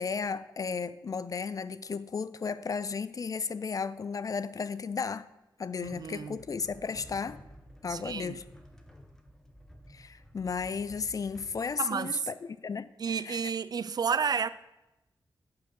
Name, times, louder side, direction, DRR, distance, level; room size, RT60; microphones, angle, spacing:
voice 1, 0.0-5.3 5.6-7.4 7.8-8.4 9.9-12.3 12.6-13.5, left 5 dB, 45° left, 0.4 m, -34 dB
sound 1, 5.8-11.6, equal, 5° left, 0.9 m, -53 dB
voice 2, 5.8-6.4 7.9-8.4 11.8-12.1 13.0-14.5, right 6 dB, 50° right, 0.3 m, -31 dB
8.2 x 4.5 x 6.3 m
wide cardioid pair, 85°, 8 cm